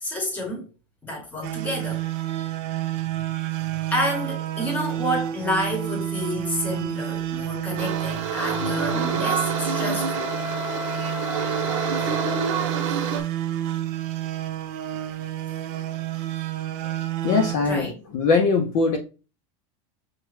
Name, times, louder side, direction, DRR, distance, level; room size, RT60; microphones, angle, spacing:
voice 1, 0.0-0.7 1.0-2.0 3.9-10.3 17.6-17.9, left 1 dB, 10° left, 1.0 m, -29 dB
sound 1, 1.4-17.6, right 12 dB, 40° right, 0.4 m, -29 dB
sound 2, 7.8-13.2, right 6 dB, 70° right, 0.9 m, -28 dB
Wind instrument woodwind instrument, 8.0-12.6, left 5 dB, 60° left, 0.9 m, -34 dB
voice 2, 17.2-19.0, left 4 dB, 40° left, 0.5 m, -21 dB
6.1 x 2.2 x 3.1 m
supercardioid pair, 170°, 17 cm